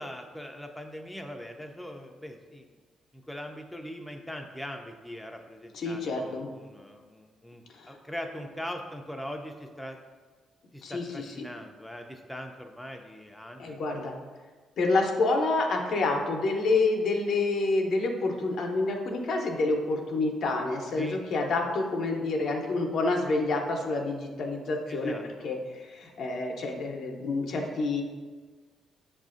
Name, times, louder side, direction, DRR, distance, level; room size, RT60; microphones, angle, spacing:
voice 1, 0.0-2.7 3.1-10.0 10.7-13.8 21.0-21.2 24.9-25.3, equal, 5° left, 3 dB, 0.3 m, -41 dB
voice 2, 5.7-6.5 7.7-8.0 10.8-11.3 13.6-14.1 14.8-28.0, left 3 dB, 65° left, 2 dB, 0.6 m, -28 dB
6.4 x 2.4 x 2.4 m, 1.4 s
cardioid pair, 90°, 0 cm